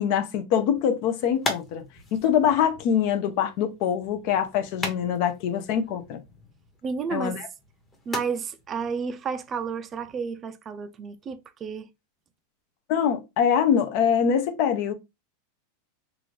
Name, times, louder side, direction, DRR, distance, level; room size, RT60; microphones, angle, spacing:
voice 1, 0.0-1.8 2.1-6.2 7.1-7.5 12.9-14.9, left 8 dB, 50° left, 0.5 m, -24 dB
sound 1, 0.5-10.3, left 2 dB, 15° left, 0.9 m, -40 dB
voice 2, 6.8-7.4 8.1-11.9, right 5 dB, 20° right, 0.4 m, -31 dB
3.7 x 2.4 x 3.2 m
supercardioid pair, 150°, 0 cm